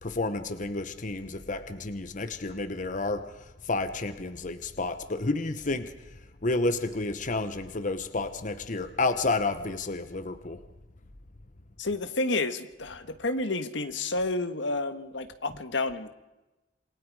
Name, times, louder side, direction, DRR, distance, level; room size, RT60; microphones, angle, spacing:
voice 1, 0.0-3.3 3.7-5.9 6.4-10.6, left 3 dB, 45° left, 10 dB, 1.1 m, -30 dB
voice 2, 11.8-16.1, left 2 dB, 80° left, 9 dB, 1.5 m, -30 dB
28.0 x 21.0 x 4.9 m, 1.0 s
head